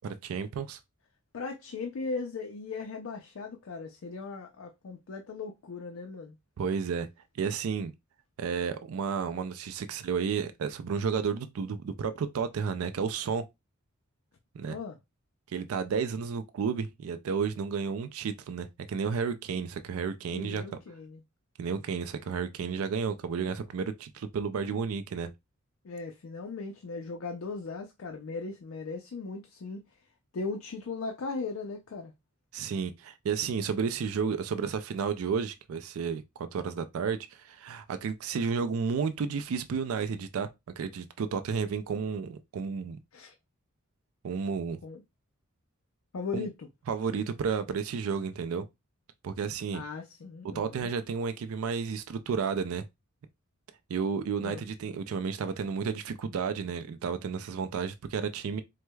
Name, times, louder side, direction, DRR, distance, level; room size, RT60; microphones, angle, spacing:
voice 1, 0.0-0.8 6.6-7.1 7.3-7.9 8.4-13.4 14.5-14.8 15.5-20.6 21.6-25.3 32.5-40.5 40.8-43.0 44.2-44.8 46.3-46.5 46.9-48.7 49.2-49.8 50.4-52.9 53.9-58.6, right 6 dB, 80° right, 0.4 m, -32 dB
voice 2, 1.3-6.4 14.7-15.0 20.3-21.2 25.8-29.8 30.3-32.1 43.1-43.3 44.8-45.0 46.1-46.7 49.7-50.9 54.4-54.6, left 4 dB, 65° left, 0.4 m, -38 dB
4.6 x 2.1 x 2.2 m
head